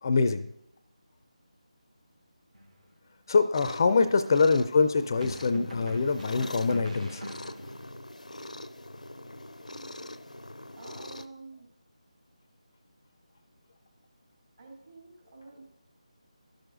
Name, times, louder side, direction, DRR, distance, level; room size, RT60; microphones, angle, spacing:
voice 1, 0.0-0.5 3.3-7.2, left 4 dB, 35° left, 11 dB, 0.4 m, -24 dB
sound 1, 2.5-2.8 5.2-7.9, equal, 90° right, 1.2 m, -43 dB
sound 2, 3.5-11.3, left 1 dB, 85° left, 0.5 m, -43 dB
voice 2, 4.0-4.6 10.4-11.7 14.6-15.6, right 3 dB, 50° right, -2 dB, 2.9 m, -49 dB
12.0 x 6.4 x 2.5 m, 0.75 s
figure-of-eight pair, 160°, 4 cm